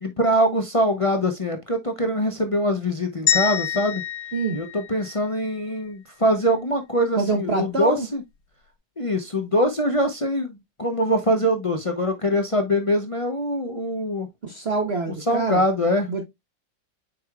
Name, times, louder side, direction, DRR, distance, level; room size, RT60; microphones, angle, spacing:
voice 1, 0.0-4.0 4.5-8.2 9.0-14.3 15.3-16.1, equal, 40° left, 0.5 m, -23 dB
sound 1, 3.3-5.5, left 10 dB, 75° left, 1.5 m, -26 dB
voice 2, 7.2-8.1 14.4-15.6 16.1-16.2, right 3 dB, 40° right, 1.2 m, -25 dB
8.3 x 4.9 x 2.3 m
omnidirectional pair, 2.0 m